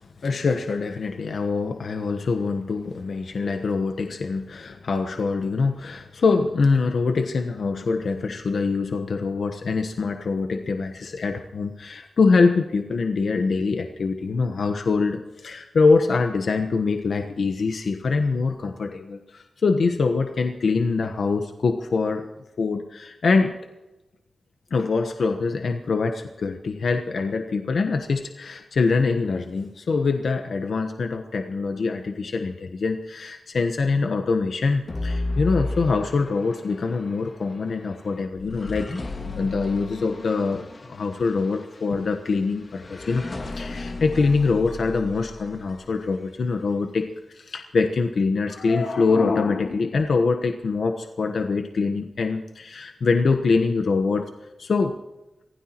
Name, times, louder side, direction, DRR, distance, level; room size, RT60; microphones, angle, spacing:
voice 1, 0.2-22.3 22.6-23.5 24.7-54.3 54.6-54.9, left 4 dB, 70° left, 5 dB, 1.1 m, -24 dB
sound 1, 34.9-46.2, left 2 dB, 50° left, 2.3 m, -34 dB
25.0 x 16.0 x 3.0 m, 1.0 s
cardioid pair, 75°, 0 cm